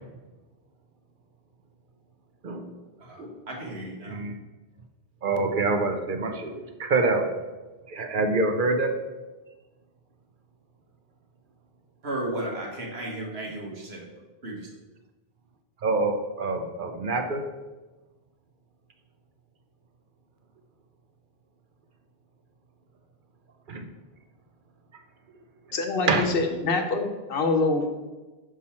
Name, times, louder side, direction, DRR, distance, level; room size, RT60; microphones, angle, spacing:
voice 1, 3.5-4.2 12.0-14.1 14.4-14.7, right 1 dB, 80° right, -1 dB, 1.7 m, -34 dB
voice 2, 4.0-4.3 5.2-7.2 7.9-8.9 15.8-17.4 23.7-23.9 26.1-26.3, right 3 dB, 55° right, 5 dB, 0.8 m, -26 dB
voice 3, 25.7-28.0, left 3 dB, 65° left, 4 dB, 1.0 m, -25 dB
6.3 x 5.5 x 4.3 m, 1.2 s
omnidirectional pair, 1.1 m